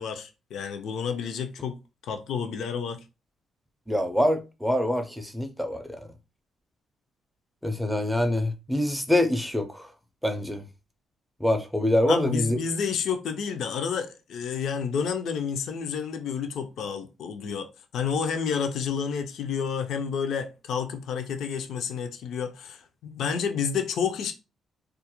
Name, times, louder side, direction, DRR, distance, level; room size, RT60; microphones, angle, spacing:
voice 1, 0.0-1.8 2.0-3.0 12.1-17.7 17.9-24.3, left 6 dB, 75° left, 0.4 m, -30 dB
voice 2, 3.9-6.0 7.6-9.9 10.2-10.6 11.4-12.6, left 1 dB, ahead, 0.4 m, -25 dB
2.3 x 2.0 x 2.8 m
cardioid pair, 90°, 0 cm